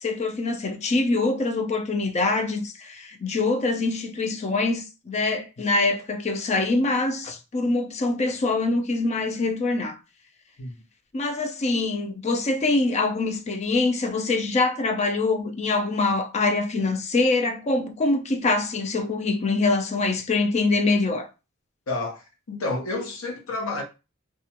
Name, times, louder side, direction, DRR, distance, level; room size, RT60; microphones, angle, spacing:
voice 1, 0.0-10.0 11.1-21.3, left 3 dB, 35° left, 0.4 m, -24 dB
voice 2, 21.9-23.8, left 2 dB, 85° left, 0.7 m, -30 dB
2.3 x 2.1 x 2.8 m
head